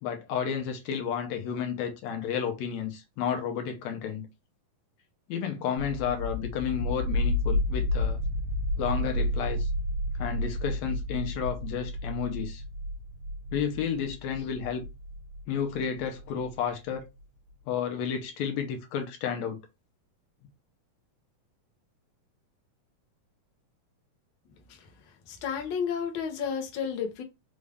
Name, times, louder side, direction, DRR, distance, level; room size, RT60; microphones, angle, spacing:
voice 1, 0.0-4.3 5.3-8.2 8.8-9.7 10.2-12.6 13.5-14.8 15.5-17.1 17.7-19.6, left 7 dB, 75° left, 1.8 m, -31 dB
sound 1, 5.8-16.5, left 1 dB, 60° right, 1.9 m, -31 dB
voice 2, 24.7-27.2, left 7 dB, 90° left, 1.0 m, -32 dB
5.2 x 2.4 x 3.3 m
omnidirectional pair, 3.7 m